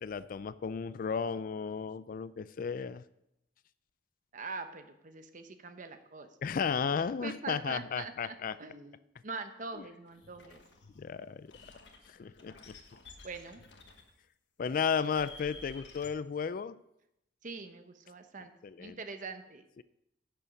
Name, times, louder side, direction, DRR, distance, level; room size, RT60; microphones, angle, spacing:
voice 1, 0.0-3.0 6.4-8.6 11.0-11.5 12.1-12.8 14.6-16.8 18.6-19.0 19.8-19.9, left 6 dB, 50° left, 16 dB, 0.4 m, -34 dB
voice 2, 4.3-6.3 7.2-9.0 9.2-10.6 13.2-13.6 17.4-18.5 18.8-19.6, right 4 dB, 45° right, 8 dB, 0.8 m, -43 dB
sound 1, 10.1-11.0 11.5-14.1 14.7-16.1, left 4 dB, 70° left, 1.3 m, -53 dB
10.5 x 6.9 x 5.1 m, 0.82 s
head